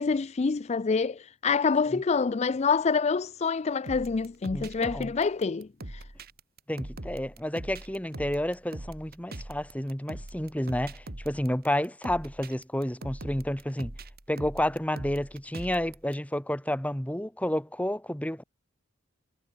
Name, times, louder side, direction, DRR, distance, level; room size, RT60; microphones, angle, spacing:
voice 1, 0.0-6.0, left 5 dB, 30° left, 0.4 m, -27 dB
sound 1, 3.9-16.1, right 1 dB, 45° right, 2.1 m, -42 dB
voice 2, 4.5-5.1 6.7-13.9 14.3-18.4, left 1 dB, 5° left, 2.2 m, -30 dB
head